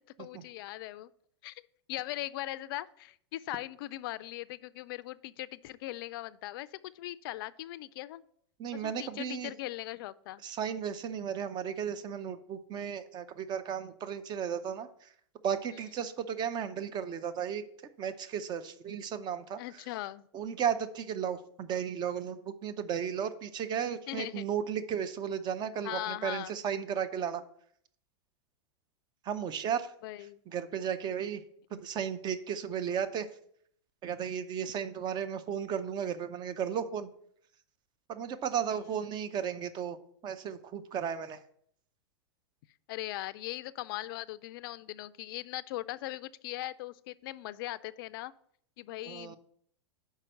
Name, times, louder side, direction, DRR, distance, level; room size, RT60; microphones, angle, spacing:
voice 1, 0.2-1.1 1.4-8.2 8.7-10.4 19.6-20.2 24.1-24.5 25.8-26.5 30.0-30.4 42.9-48.3 48.8-49.4, left 16 dB, 55° left, 17 dB, 0.4 m, -40 dB
voice 2, 8.6-9.5 10.4-14.9 15.4-17.6 18.0-19.6 20.3-27.4 29.2-29.9 30.5-31.4 31.7-33.3 34.0-37.1 38.1-40.0 40.2-41.4 49.1-49.4, right 8 dB, 30° right, 11 dB, 0.6 m, -34 dB
5.6 x 4.6 x 6.3 m, 0.65 s
hypercardioid pair, 105°, 14 cm